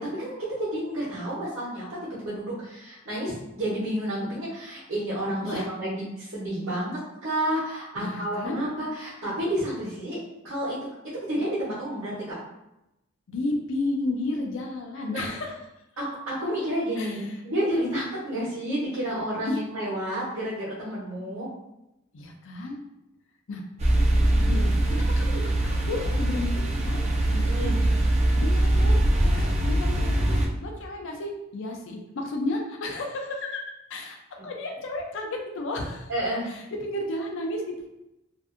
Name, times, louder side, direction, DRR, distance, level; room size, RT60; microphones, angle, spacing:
voice 1, 0.0-10.2 10.4-10.8 11.2-12.4 15.1-15.3 16.0-21.5 27.4-27.8 36.1-36.5, right 1 dB, 70° right, -10 dB, 1.0 m, -30 dB
voice 2, 8.0-8.6 13.3-15.5 17.0-17.3 17.7-18.0 19.5-19.6 22.1-22.8 23.5-23.6 24.3-27.0 27.3-27.4 27.8-27.9 28.3-33.6 33.9-34.2 34.4-36.1 36.4-37.6, left 2 dB, 65° left, 2 dB, 0.5 m, -33 dB
sound 1, 23.8-30.5, right 1 dB, 30° right, 0.4 m, -22 dB
2.6 x 2.5 x 2.4 m, 0.91 s
head